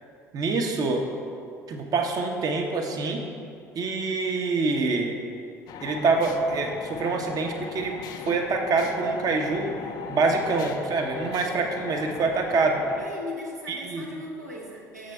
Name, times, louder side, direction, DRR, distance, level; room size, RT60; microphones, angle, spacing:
voice 1, 0.3-1.1 1.7-3.2 3.7-5.2 5.8-8.0 8.2-9.7 10.1-12.8 13.7-14.1, right 3 dB, 45° right, 3 dB, 0.8 m, -25 dB
sound 1, 5.7-13.1, left 7 dB, 50° left, 0.4 m, -39 dB
voice 2, 13.0-15.1, left 2 dB, 90° right, -4 dB, 0.9 m, -38 dB
6.6 x 6.6 x 3.4 m, 2.5 s
figure-of-eight pair, 55°, 9 cm